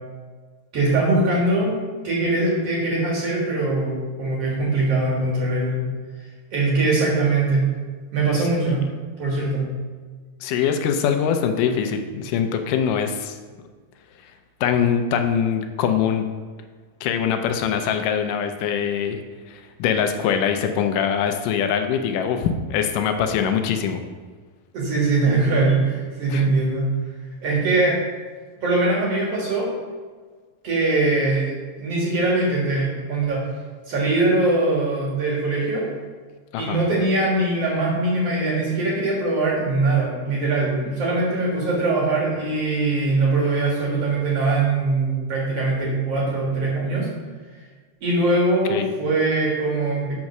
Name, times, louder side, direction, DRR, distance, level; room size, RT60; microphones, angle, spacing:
voice 1, 0.7-1.8 2.0-5.8 6.5-7.7 8.1-8.8 9.2-9.7 24.7-26.8 27.4-28.0 28.6-29.7 30.6-31.5 31.8-33.4 33.9-35.9 36.6-47.1 48.0-50.1, right 2 dB, 50° right, -3 dB, 2.3 m, -22 dB
voice 2, 10.4-13.4 14.6-16.3 17.0-19.2 19.5-24.0 26.3-26.5 36.5-36.8 48.7-48.9, left 7 dB, 80° left, 6 dB, 2.1 m, -23 dB
7.3 x 5.3 x 6.0 m, 1.5 s
omnidirectional pair, 3.9 m